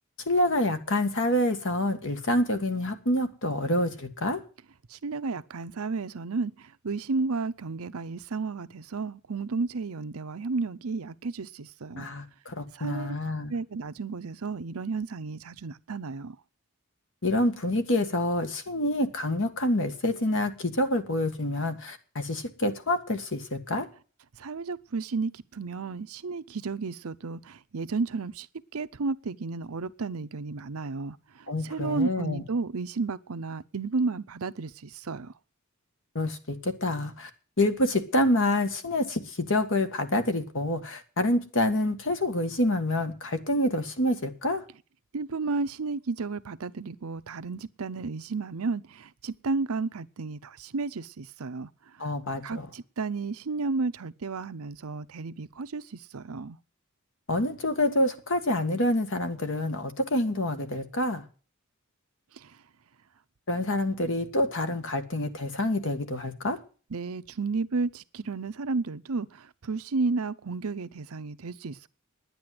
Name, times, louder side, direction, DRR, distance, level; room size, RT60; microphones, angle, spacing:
voice 1, 0.2-4.4 12.0-13.5 17.2-23.9 31.5-32.4 36.1-37.3 37.6-44.6 52.0-52.7 57.3-61.2 63.5-66.6, left 1 dB, 60° left, 1.7 m, -27 dB
voice 2, 4.9-12.1 12.7-13.1 13.5-16.4 24.4-28.5 28.7-35.3 45.1-52.1 52.4-56.6 62.3-62.6 66.9-71.9, right 4 dB, 80° right, 0.7 m, -32 dB
10.5 x 9.9 x 7.7 m
head